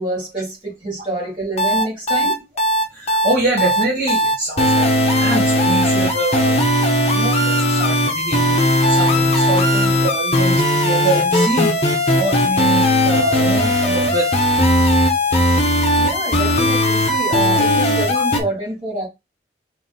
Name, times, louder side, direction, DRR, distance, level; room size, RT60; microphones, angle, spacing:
voice 1, 0.0-2.4 16.0-19.1, right 1 dB, 25° right, 2.2 m, -26 dB
sound 1, 1.6-18.4, left 1 dB, 35° left, 0.9 m, -17 dB
voice 2, 2.9-8.6 8.9-11.8 12.1-14.3 17.0-17.1 18.1-18.2, right 2 dB, 45° right, 1.5 m, -24 dB
3.9 x 2.6 x 4.0 m
head